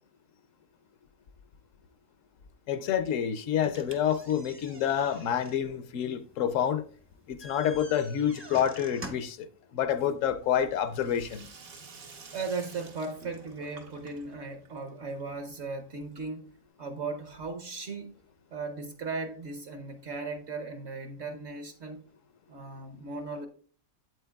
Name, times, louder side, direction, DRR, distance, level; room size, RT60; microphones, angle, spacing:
voice 1, 2.7-6.8 7.3-9.5 9.7-11.5, left 9 dB, 75° left, 0.9 m, -28 dB
sound 1, 3.6-9.5, right 1 dB, 15° right, 0.4 m, -48 dB
Sink (filling or washing), 9.8-16.6, right 4 dB, 85° right, 1.6 m, -52 dB
voice 2, 12.3-16.4 16.8-18.2 18.5-22.0 22.5-23.5, right 3 dB, 60° right, 0.9 m, -37 dB
8.0 x 7.9 x 2.3 m
omnidirectional pair, 1.4 m